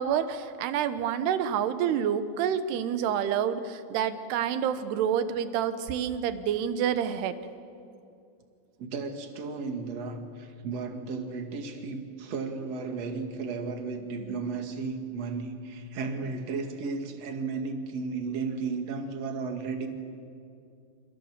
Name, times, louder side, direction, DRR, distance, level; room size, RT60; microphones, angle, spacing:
voice 1, 0.0-7.4, right 8 dB, 70° right, 11 dB, 3.0 m, -28 dB
voice 2, 8.8-19.9, right 4 dB, 45° right, 5 dB, 2.5 m, -34 dB
29.5 x 27.0 x 7.4 m, 2.4 s
omnidirectional pair, 5.3 m